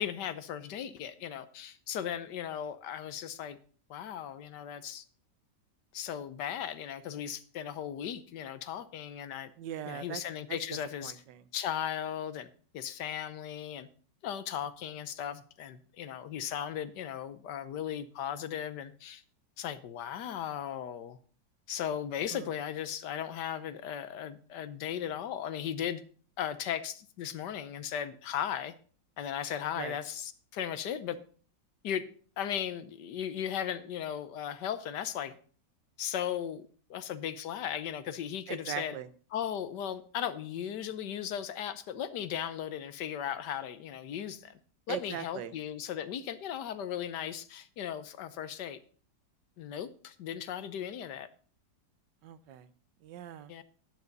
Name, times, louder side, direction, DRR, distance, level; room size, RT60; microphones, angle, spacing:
voice 1, 0.0-3.6 3.9-5.0 5.9-9.5 9.9-11.1 11.5-12.5 12.7-13.9 14.2-19.2 19.6-21.2 21.7-26.0 26.4-28.7 29.2-31.2 31.8-32.1 32.4-35.4 36.0-36.6 36.9-38.9 39.3-44.6 44.9-48.8 49.6-51.3 53.5-53.6, left 9 dB, 75° left, 13 dB, 1.4 m, -37 dB
voice 2, 9.6-10.2 10.5-10.6 11.0-11.4 22.3-22.5 29.7-30.0 38.5-39.1 44.9-45.5 52.2-52.7 53.0-53.5, right 10 dB, 80° right, 14 dB, 1.4 m, -40 dB
12.0 x 9.5 x 4.0 m, 0.43 s
omnidirectional pair, 1.9 m